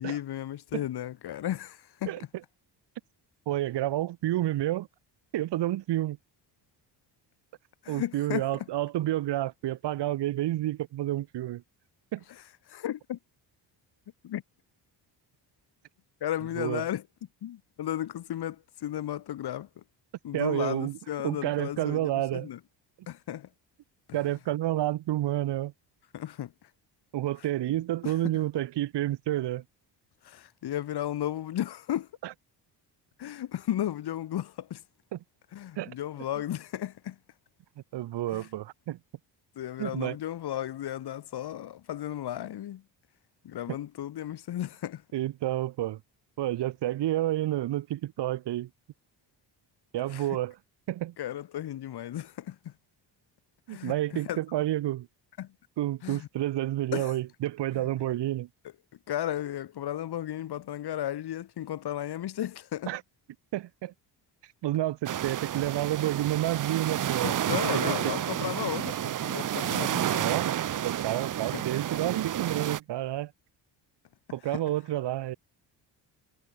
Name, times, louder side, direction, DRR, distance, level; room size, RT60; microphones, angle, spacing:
voice 1, 0.0-2.1 7.8-8.7 12.7-13.2 14.2-14.4 16.2-17.0 17.4-19.8 20.2-22.6 23.1-23.5 26.1-26.5 28.0-28.2 30.2-32.1 33.2-34.8 35.5-37.2 38.3-38.5 39.6-42.8 43.4-45.0 50.1-50.3 51.2-52.7 53.7-54.4 55.4-55.5 56.0-56.3 56.9-57.1 57.7-57.9 59.1-62.9 67.2-70.3 71.5-71.6 74.5-74.6, left 12 dB, 65° left, 6.1 m, -34 dB
voice 2, 3.5-4.9 5.3-6.2 7.9-11.6 12.1-12.2 16.6-16.8 20.3-21.0 21.2-22.5 24.1-25.7 27.1-29.6 32.2-32.3 35.1-35.2 35.8-35.9 37.9-39.0 39.8-40.2 45.1-46.0 46.4-48.7 49.9-50.5 50.9-51.1 53.7-55.1 55.8-58.5 62.9-63.0 63.5-63.9 64.6-67.4 67.7-68.1 70.2-70.5 70.8-73.3 74.3-75.4, right 14 dB, 70° right, 2.1 m, -29 dB
sound 1, 65.1-72.8, right 11 dB, 45° right, 1.2 m, -30 dB
cardioid pair, 155°, 43 cm